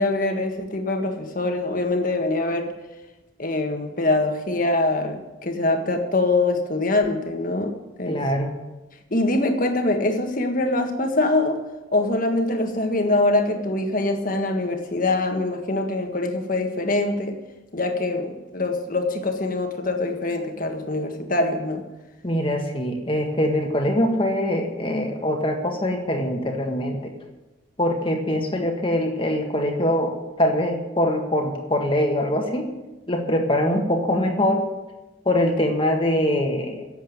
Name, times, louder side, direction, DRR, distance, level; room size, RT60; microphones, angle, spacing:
voice 1, 0.0-2.7 3.4-8.2 9.1-11.6 11.9-17.4 17.7-21.8, left 2 dB, 45° left, 5 dB, 1.6 m, -24 dB
voice 2, 8.1-8.5 22.2-27.1 27.8-32.7 33.1-34.6 35.2-37.0, left 1 dB, 25° left, 3 dB, 1.7 m, -23 dB
11.0 x 8.1 x 9.2 m, 1.1 s
head